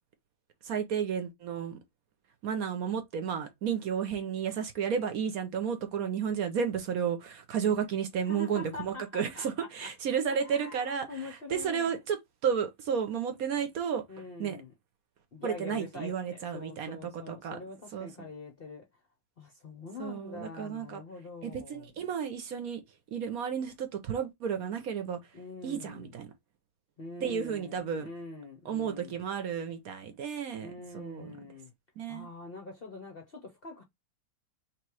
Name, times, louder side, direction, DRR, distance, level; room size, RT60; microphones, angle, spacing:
voice 1, 0.6-1.8 2.4-14.0 14.4-14.6 15.4-17.6 17.9-18.1 20.0-21.0 21.4-22.8 23.1-25.2 25.6-26.3 27.2-28.1 28.6-31.3 32.0-32.3, right 7 dB, 60° right, 1.1 m, -32 dB
voice 2, 8.3-9.9 10.3-11.9 14.1-14.7 15.3-18.9 19.4-21.8 25.3-26.1 27.0-29.2 30.6-31.7 32.1-33.8, left 3 dB, 50° left, 0.7 m, -44 dB
3.3 x 3.0 x 4.6 m
omnidirectional pair, 1.9 m